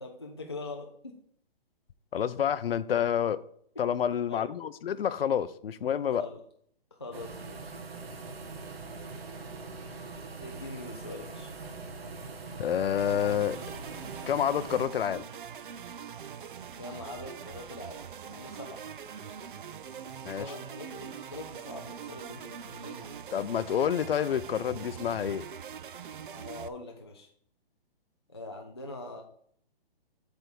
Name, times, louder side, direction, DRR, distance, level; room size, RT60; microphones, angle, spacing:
voice 1, 0.0-1.1 4.3-4.5 6.1-6.4 6.9-7.7 10.4-11.5 16.7-18.9 20.3-23.2 26.3-27.3 28.3-29.2, left 2 dB, 25° left, 2 dB, 0.4 m, -43 dB
voice 2, 2.1-3.4 3.8-6.3 12.6-13.6 14.3-15.2 20.2-20.4 23.3-25.4, left 9 dB, 70° left, 14 dB, 0.6 m, -28 dB
sound 1, 7.1-14.8, right 3 dB, 80° right, 1.3 m, -42 dB
sound 2, 13.0-26.7, right 8 dB, 60° right, 0.5 m, -43 dB
7.9 x 3.5 x 6.0 m, 0.65 s
hypercardioid pair, 175°, 30 cm